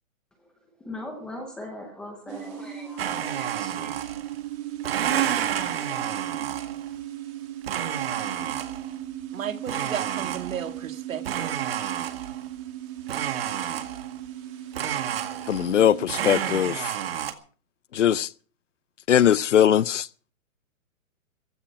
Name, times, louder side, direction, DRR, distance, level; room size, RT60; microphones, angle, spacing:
voice 1, 0.8-3.9, left 1 dB, ahead, 0.7 m, -40 dB
sound 1, 2.3-16.0, right 11 dB, 20° right, 2.8 m, -37 dB
Domestic sounds home sounds, 3.0-4.4 4.8-6.9 7.6-8.9 9.7-10.8 11.2-12.5 13.1-14.2 14.7-15.8 16.1-17.3, right 10 dB, 45° right, 2.0 m, -30 dB
voice 2, 9.3-11.8, right 8 dB, 70° right, 2.1 m, -34 dB
voice 3, 15.5-16.8 18.0-18.3 19.1-20.0, left 10 dB, 60° left, 0.8 m, -20 dB
15.5 x 13.5 x 6.0 m
hypercardioid pair, 165°, 42 cm